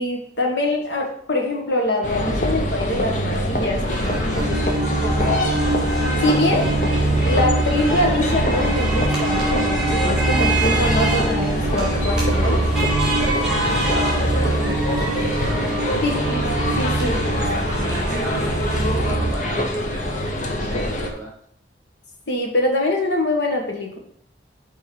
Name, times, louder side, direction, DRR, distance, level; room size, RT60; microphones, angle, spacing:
voice 1, 0.0-3.8 4.5-4.6 5.0-5.5 6.2-6.7 7.2-12.6 16.0-17.2 22.3-24.0, left 1 dB, 75° left, 1 dB, 1.6 m, -24 dB
sound 1, 2.0-21.1, equal, 45° left, 0.9 m, -24 dB
voice 2, 3.6-5.3 13.2-16.0 17.0-21.3, equal, 20° right, -2 dB, 2.7 m, -36 dB
sound 2, 3.9-19.1, right 1 dB, 5° right, 2.1 m, -29 dB
sound 3, 4.1-19.3, right 2 dB, 40° right, 0.7 m, -24 dB
6.1 x 4.6 x 4.6 m, 0.63 s
head